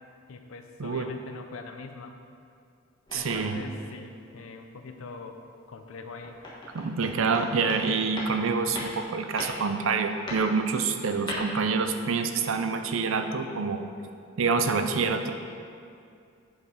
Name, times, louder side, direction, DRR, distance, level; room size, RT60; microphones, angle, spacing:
voice 1, 0.3-2.2 3.1-5.4 5.7-6.4, left 3 dB, 85° left, 5 dB, 0.5 m, -42 dB
sound 1, 3.1-3.6 5.8-7.9 8.2-8.4 8.7-9.0 9.4-9.7 10.3-10.5 11.3-11.4, left 1 dB, 20° left, 1.3 m, -37 dB
voice 2, 3.1-3.6 6.7-13.8 14.4-15.3, right 4 dB, 80° right, 7 dB, 0.5 m, -27 dB
7.8 x 4.9 x 5.3 m, 2.4 s
head